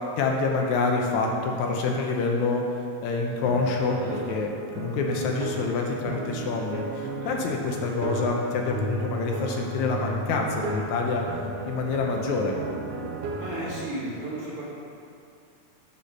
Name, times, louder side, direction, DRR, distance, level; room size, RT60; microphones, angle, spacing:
voice 1, 0.2-2.6 3.0-4.0 4.3-4.5 4.8-11.2 11.7-12.6, left 4 dB, 80° left, 1 dB, 2.1 m, -26 dB
sound 1, 3.4-13.9, right 3 dB, 90° right, 2.2 m, -34 dB
voice 2, 13.4-14.6, right 1 dB, 35° right, -8 dB, 2.0 m, -34 dB
8.3 x 4.3 x 6.5 m, 2.5 s
omnidirectional pair, 3.4 m